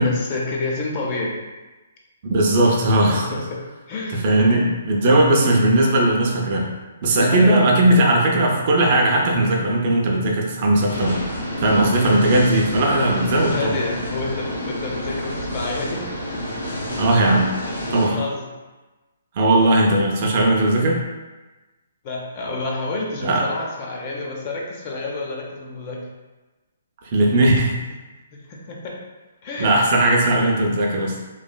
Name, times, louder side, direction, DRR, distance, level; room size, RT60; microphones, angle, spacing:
voice 1, 0.0-1.3 3.1-3.6 3.9-4.2 7.3-8.0 13.5-16.1 18.1-18.5 22.0-26.1 28.3-28.9 29.4-29.8, left 3 dB, 30° left, -2 dB, 0.5 m, -29 dB
voice 2, 2.3-3.4 4.1-6.7 7.0-13.7 17.0-17.5 17.9-18.2 19.4-21.0 23.2-23.4 27.1-27.7 29.6-31.2, right 1 dB, 40° right, -1 dB, 0.5 m, -18 dB
sound 1, 10.9-18.1, equal, 80° left, 1.3 m, -29 dB
3.0 x 2.4 x 2.2 m, 1.2 s
hypercardioid pair, 155°, 0 cm